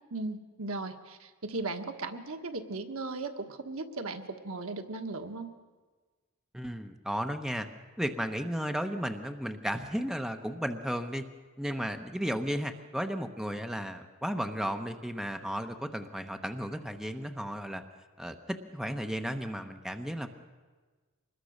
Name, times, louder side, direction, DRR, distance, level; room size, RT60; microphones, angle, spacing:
voice 1, 0.1-5.5, right 3 dB, 75° right, 6 dB, 1.6 m, -37 dB
voice 2, 6.5-7.7 8.0-11.2 11.6-17.8 18.2-20.3, equal, 5° right, 6 dB, 1.0 m, -34 dB
24.5 x 20.5 x 6.5 m, 1.3 s
head